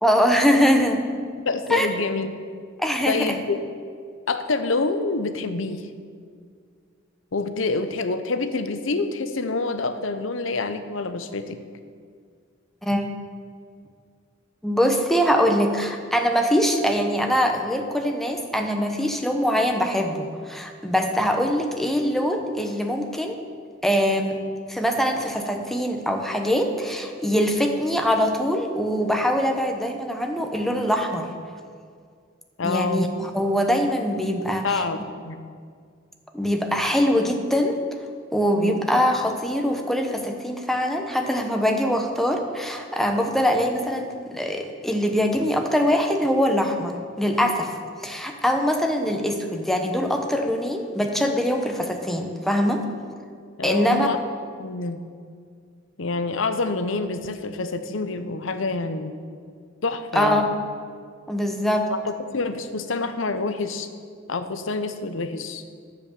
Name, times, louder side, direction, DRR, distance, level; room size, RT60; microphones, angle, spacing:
voice 1, 0.0-1.0 1.7-1.9 2.8-3.4 12.8-13.0 14.6-23.4 23.8-24.4 24.7-31.3 32.6-34.8 36.3-37.8 38.3-47.8 48.0-52.8 53.6-54.1 60.1-60.5 61.3-61.9, equal, ahead, 3 dB, 0.9 m, -23 dB
voice 2, 1.5-2.3 3.1-3.7 4.3-5.9 7.3-11.6 32.6-33.2 34.6-35.4 38.6-38.8 53.6-54.2 54.6-55.0 56.0-59.2 59.8-60.4 61.9-63.9 64.3-65.6, left 3 dB, 70° left, 10 dB, 0.8 m, -27 dB
10.0 x 7.7 x 6.9 m, 2.1 s
head